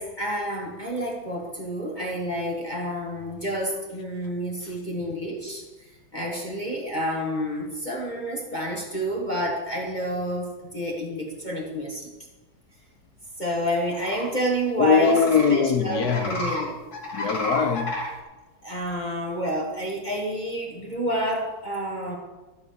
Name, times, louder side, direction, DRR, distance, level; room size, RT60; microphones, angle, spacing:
voice 1, 0.0-5.6 6.1-12.1 13.4-15.2 15.5-16.8 18.6-22.1, right 1 dB, 25° left, -2 dB, 1.9 m, -29 dB
sound 1, 13.8-14.3 14.9-15.5 15.9-16.6 16.9-18.1, left 1 dB, 45° left, 3.6 m, -31 dB
voice 2, 14.8-16.4 17.1-17.9, left 6 dB, 65° left, 8 dB, 1.1 m, -21 dB
13.5 x 7.2 x 6.7 m, 1.2 s
omnidirectional pair, 2.2 m